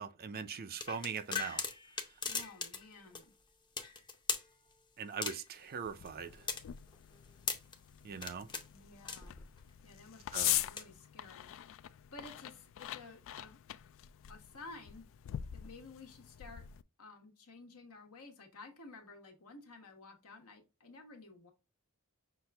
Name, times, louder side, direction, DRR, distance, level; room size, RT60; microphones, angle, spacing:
voice 1, 0.0-1.6 5.0-6.5 8.0-8.5 10.3-10.6, right 6 dB, 45° right, 0.5 m, -41 dB
sound 1, 0.8-2.9 3.1-3.2 3.8-4.5 5.2-5.6 6.1-7.7 8.2-8.7 9.0-9.6 10.6-10.8, left 5 dB, 20° left, 0.6 m, -38 dB
voice 2, 2.2-3.3 8.7-9.4 9.8-13.6 14.3-15.0 15.5-16.6 17.0-21.5, left 3 dB, 80° left, 1.3 m, -53 dB
sound 2, 5.8-16.8, left 13 dB, 60° left, 0.3 m, -42 dB
5.9 x 2.4 x 3.4 m
head